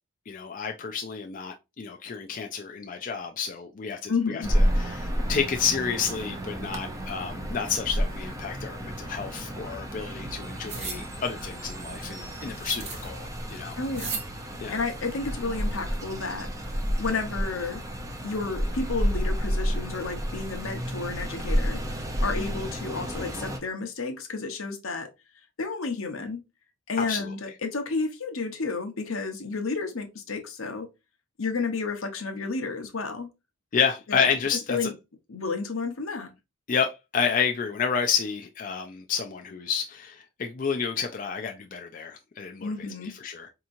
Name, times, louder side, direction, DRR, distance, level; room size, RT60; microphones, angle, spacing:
voice 1, 0.3-13.8 14.6-14.8 27.0-27.3 33.7-34.9 36.7-42.7 43.2-43.5, left 6 dB, 40° left, 0.4 m, -30 dB
voice 2, 4.1-4.5 13.8-14.2 14.7-16.5 17.0-17.8 18.2-21.8 22.2-25.1 25.6-26.4 26.9-30.9 31.4-33.3 34.1-34.9 35.3-36.3 42.6-43.1, left 4 dB, 80° left, 0.9 m, -31 dB
sound 1, 4.4-23.6, equal, 15° right, 0.5 m, -31 dB
sound 2, 10.7-11.0 12.7-13.1 13.9-14.3, right 5 dB, 35° right, 1.1 m, -34 dB
4.6 x 2.9 x 2.5 m
head